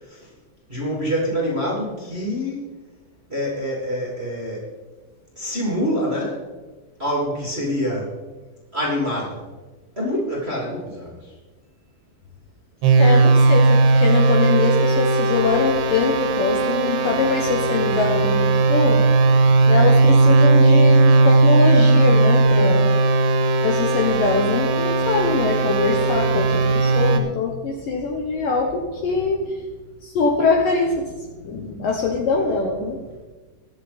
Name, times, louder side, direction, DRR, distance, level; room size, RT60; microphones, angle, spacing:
voice 1, 0.7-2.6 3.3-4.7 5.3-6.4 7.0-8.1 8.7-9.4 10.0-11.3, equal, 20° right, -4 dB, 2.2 m, -26 dB
sound 1, 12.8-27.2, right 3 dB, 75° right, 3.3 m, -17 dB
voice 2, 13.0-19.1 19.7-22.9 23.6-29.6 30.0-31.1 31.4-33.0, left 4 dB, 65° left, 1 dB, 2.4 m, -23 dB
22.0 x 7.6 x 4.2 m, 1.3 s
omnidirectional pair, 5.0 m